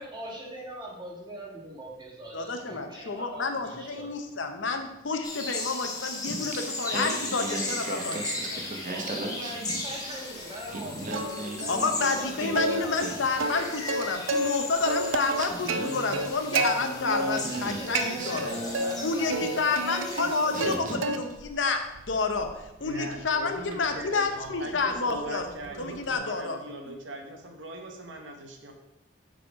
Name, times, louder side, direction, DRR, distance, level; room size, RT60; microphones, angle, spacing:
voice 1, 0.0-4.1 8.8-13.0 13.5-13.7 17.2-20.6, right 1 dB, 25° right, -2 dB, 1.6 m, -41 dB
voice 2, 2.3-8.8 11.7-18.5 19.0-21.8 22.1-25.4 25.8-26.6 26.9-27.0, left 4 dB, 70° left, 6 dB, 0.7 m, -29 dB
sound 1, 5.2-20.8, left 2 dB, 20° left, 1.1 m, -37 dB
Singing, 6.3-10.2 10.5-13.8 14.8-14.9 15.3-19.5 20.1-20.2 20.5-21.3, right 2 dB, 45° right, 0.8 m, -37 dB
Plucked string instrument, 11.1-11.7 12.0-12.2 12.6-14.6 14.9-16.7 17.1-17.6 17.9-18.9 19.3-20.8 21.0-21.5 21.9-26.2, right 2 dB, 85° right, 0.6 m, -31 dB
voice 3, 22.8-28.7, right 2 dB, 70° right, 4 dB, 1.0 m, -40 dB
6.3 x 4.2 x 4.9 m, 0.95 s
head